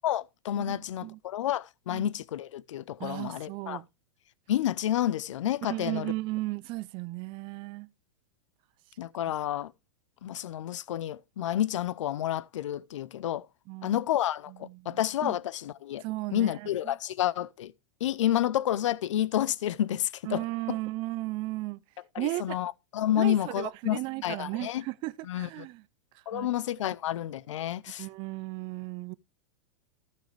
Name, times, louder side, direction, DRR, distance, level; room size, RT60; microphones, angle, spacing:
voice 1, 0.0-3.8 4.5-6.1 9.0-9.7 10.2-13.4 13.8-16.0 16.3-17.7 18.0-20.4 22.1-24.8 25.3-25.5 26.3-28.1, left 12 dB, 85° left, 0.6 m, -30 dB
voice 2, 0.6-1.2 1.9-2.1 3.0-3.9 5.6-7.9 13.7-14.0 14.5-15.4 16.0-17.0 20.2-21.8 22.2-22.6 23.1-25.9 26.3-26.5 28.0-29.1, right 20 dB, 35° right, 0.5 m, -35 dB
14.5 x 6.2 x 3.2 m
supercardioid pair, 145°, 15 cm